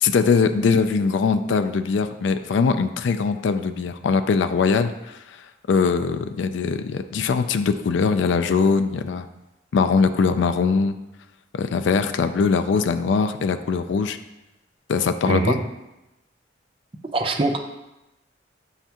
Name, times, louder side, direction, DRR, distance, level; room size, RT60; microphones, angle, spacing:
voice 1, 0.0-5.2 5.7-9.3 9.7-10.9 11.5-14.2 14.9-15.5, left 5 dB, 75° left, 9 dB, 0.4 m, -21 dB
voice 2, 15.3-15.6 17.1-17.6, right 2 dB, 30° right, 5 dB, 0.5 m, -22 dB
7.1 x 5.7 x 2.9 m, 0.96 s
head